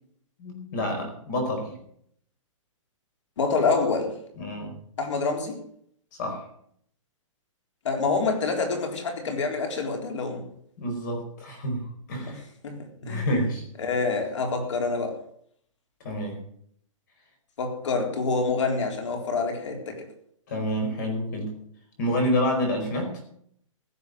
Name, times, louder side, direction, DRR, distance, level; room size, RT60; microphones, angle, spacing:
voice 1, 0.4-1.8 4.4-4.7 6.2-6.4 10.8-12.4 13.0-13.6 16.0-16.4 20.5-21.5 22.0-23.2, equal, 35° left, 4.8 m, -28 dB
voice 2, 3.4-4.1 5.0-5.6 7.8-10.4 12.3-12.4 12.6-13.3 13.8-15.2 17.6-20.1, left 4 dB, 65° left, 3.9 m, -27 dB
16.0 x 7.8 x 8.0 m
hypercardioid pair, 175°, 17 cm